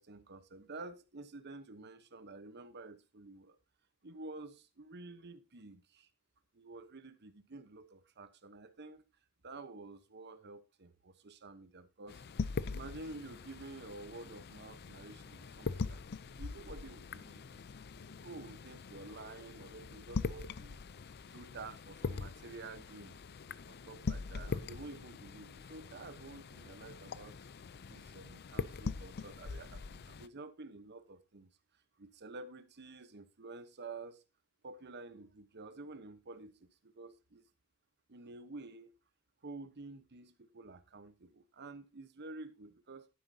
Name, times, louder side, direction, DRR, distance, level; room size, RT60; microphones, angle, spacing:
voice 1, 0.0-3.6 4.0-6.1 6.5-9.0 9.4-12.2 12.7-16.1 16.3-17.6 18.1-20.8 21.2-23.2 23.6-27.5 27.9-31.5 32.0-34.2 34.6-37.4 38.1-38.9 39.4-43.1, right 3 dB, 50° right, 1.0 m, -50 dB
sound 1, 12.1-30.3, left 4 dB, 50° left, 0.5 m, -42 dB
11.5 x 9.5 x 2.8 m
head